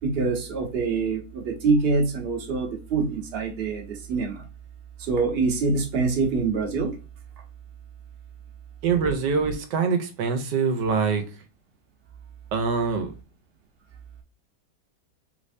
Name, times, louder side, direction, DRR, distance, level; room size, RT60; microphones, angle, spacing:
voice 1, 0.0-4.4 5.0-6.9, right 4 dB, 40° right, 1.0 m, -25 dB
voice 2, 8.8-11.3 12.5-13.1, right 5 dB, 85° right, 1.3 m, -24 dB
3.4 x 3.2 x 2.5 m
omnidirectional pair, 1.9 m